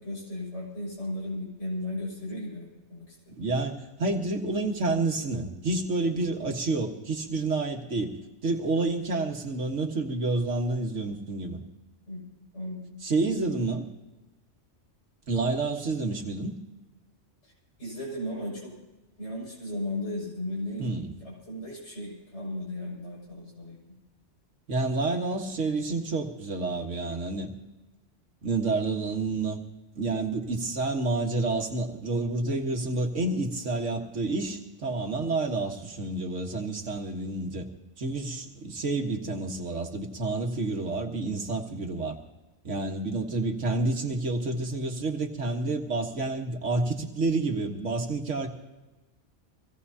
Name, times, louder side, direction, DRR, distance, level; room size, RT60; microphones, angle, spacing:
voice 1, 0.0-3.1 6.4-6.5 12.1-12.2 12.5-12.9 17.8-18.7 19.2-20.9 21.2-24.0, left 1 dB, 70° left, -5 dB, 6.6 m, -35 dB
voice 2, 3.3-8.2 8.4-11.6 13.0-13.9 15.3-16.6 20.8-21.1 24.7-27.5 28.4-29.6 30.0-37.7 38.0-42.2 42.6-48.5, right 3 dB, 80° right, 2 dB, 1.9 m, -29 dB
24.0 x 17.0 x 2.8 m, 1.1 s
omnidirectional pair, 1.2 m